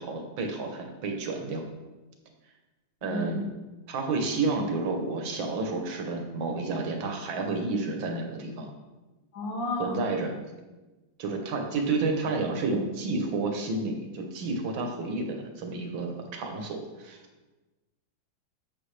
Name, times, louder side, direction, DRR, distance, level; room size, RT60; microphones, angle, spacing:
voice 1, 0.0-1.6 3.0-3.4 3.9-8.7 9.8-10.3 11.2-17.2, right 3 dB, 85° right, 3 dB, 1.8 m, -30 dB
voice 2, 3.0-3.5 9.3-10.2, left 1 dB, 70° left, -1 dB, 2.2 m, -32 dB
8.4 x 7.0 x 3.3 m, 1.2 s
omnidirectional pair, 2.1 m